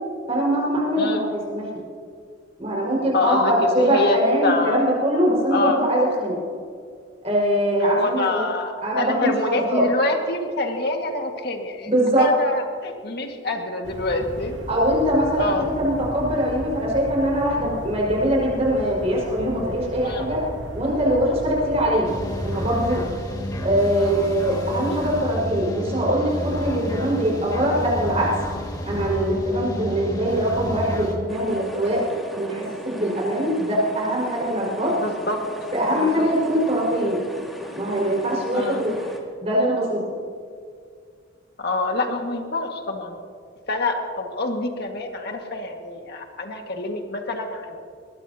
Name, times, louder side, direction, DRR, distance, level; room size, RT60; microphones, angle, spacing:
voice 1, 0.3-1.7 2.6-6.4 7.2-8.5 8.8-9.9 11.8-12.3 14.7-20.4 20.7-22.1 22.4-23.0 23.6-28.3 28.9-32.0 32.4-34.9 35.7-37.2 37.8-38.9 39.4-40.0, equal, 35° right, -4 dB, 5.2 m, -22 dB
voice 2, 3.1-4.2 4.4-4.8 5.5-5.8 7.8-11.9 12.2-14.6 15.4-15.7 20.0-20.3 23.8-24.1 34.9-35.4 36.0-36.3 38.5-38.8 41.6-43.2 43.7-47.8, left 2 dB, 55° left, 3 dB, 1.9 m, -26 dB
sound 1, 13.8-23.1, equal, 85° right, 2.5 m, -36 dB
sound 2, 22.0-31.2, equal, 20° left, 2.0 m, -30 dB
sound 3, 31.3-39.2, equal, ahead, 2.0 m, -39 dB
21.5 x 20.0 x 2.9 m, 2.2 s
head